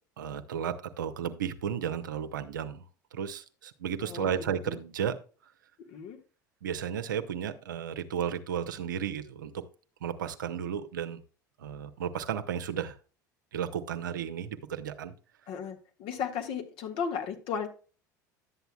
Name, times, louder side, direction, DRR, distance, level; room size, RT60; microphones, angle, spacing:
voice 1, 0.2-2.8 3.1-5.2 6.6-9.6 10.0-11.2 11.6-12.9 13.5-15.1, right 8 dB, 80° right, 0.8 m, -33 dB
voice 2, 4.0-4.8 5.8-6.2 15.5-17.7, left 7 dB, 60° left, 1.7 m, -35 dB
11.5 x 8.0 x 2.3 m
hypercardioid pair, 70°, 10 cm